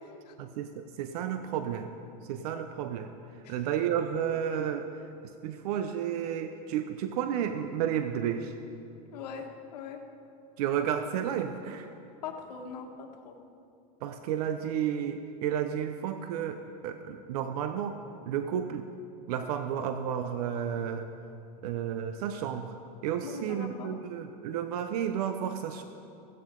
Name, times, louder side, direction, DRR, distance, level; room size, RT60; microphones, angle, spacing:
voice 1, 0.4-1.9 2.3-3.1 3.5-4.9 5.4-8.5 10.6-11.9 14.0-18.0 18.3-18.9 19.3-21.1 21.6-22.8 23.0-25.8, right 9 dB, 70° right, 8 dB, 0.8 m, -32 dB
voice 2, 9.1-9.5 9.7-10.0 12.2-13.4 23.2-23.9, left 6 dB, 85° left, 2 dB, 1.8 m, -41 dB
16.0 x 16.0 x 3.9 m, 2.6 s
supercardioid pair, 150°, 20 cm